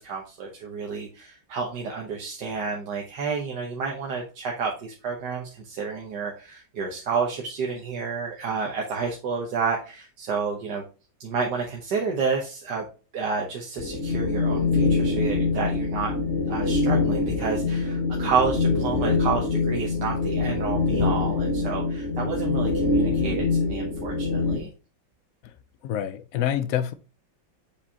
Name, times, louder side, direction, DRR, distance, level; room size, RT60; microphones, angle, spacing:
voice 1, 0.0-10.8 11.2-12.8 13.1-16.1 16.5-24.7, right 5 dB, 60° right, 1.6 m, -30 dB
sound 1, 13.8-24.6, left 3 dB, 40° left, 1.9 m, -24 dB
voice 2, 25.8-26.9, left 10 dB, 85° left, 0.7 m, -26 dB
7.1 x 4.9 x 2.8 m
omnidirectional pair, 2.2 m